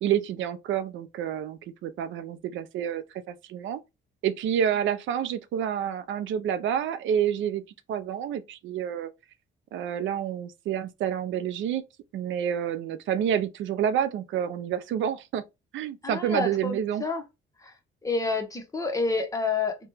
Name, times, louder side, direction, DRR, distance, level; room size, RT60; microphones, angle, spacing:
voice 1, 0.0-3.8 4.2-7.6 7.9-9.1 9.7-11.8 12.1-15.4 15.7-17.0, right 9 dB, 75° right, 0.4 m, -28 dB
voice 2, 16.0-17.2 17.6-17.7 18.0-19.8, left 4 dB, 15° left, 0.8 m, -28 dB
2.9 x 2.2 x 3.2 m
cardioid pair, 90°, 20 cm